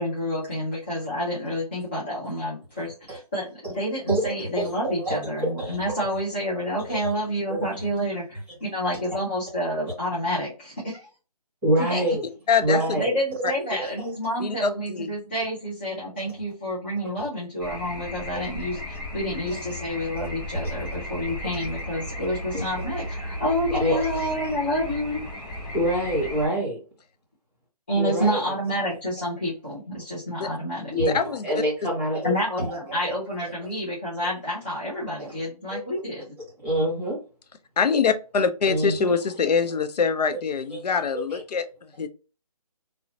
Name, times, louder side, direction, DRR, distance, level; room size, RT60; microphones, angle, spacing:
voice 1, 0.0-3.5 3.7-11.1 11.9-12.2 12.9-25.2 27.9-30.9 32.2-36.3, equal, 15° left, 0.4 m, -29 dB
voice 2, 4.1-5.8 6.8-7.1 7.5-7.7 11.6-12.3 12.6-13.1 13.5-13.9 17.2-17.3 20.2-20.3 20.5-20.7 22.5-23.0 23.7-24.5 25.7-26.8 27.9-28.6 30.9-32.7 33.0-33.1 35.7-35.8 36.6-37.2 38.6-39.1 40.7-40.8 41.1-41.4, right 1 dB, 5° right, 0.9 m, -27 dB
voice 3, 12.5-12.8 14.4-15.1 30.4-30.5 31.1-31.4 37.8-41.6 42.0-42.1, left 5 dB, 85° left, 0.5 m, -24 dB
sound 1, 17.6-26.5, left 1 dB, 35° left, 1.2 m, -35 dB
2.6 x 2.0 x 2.7 m
hypercardioid pair, 165°, 20 cm